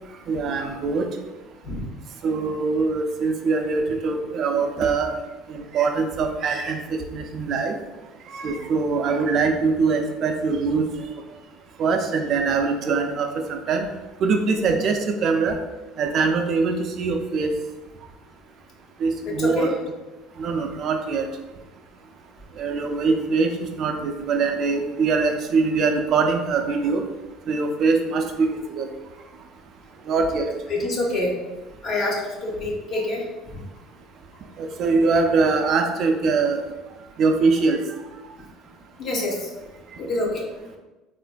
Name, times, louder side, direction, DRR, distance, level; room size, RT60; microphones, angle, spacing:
voice 1, 0.3-1.1 2.2-5.1 5.5-7.8 8.3-10.9 11.8-13.9 14.2-15.6 16.0-17.5 19.0-19.7 20.4-21.3 22.6-27.0 27.5-28.9 30.1-30.5 34.6-36.7 37.2-37.8, right 4 dB, 55° right, 5 dB, 0.4 m, -23 dB
voice 2, 19.2-19.7 30.7-31.4 31.8-33.2 39.0-39.5 40.0-40.4, left 2 dB, 50° left, -2 dB, 0.7 m, -26 dB
3.2 x 2.5 x 2.2 m, 1.1 s
supercardioid pair, 100°, 0 cm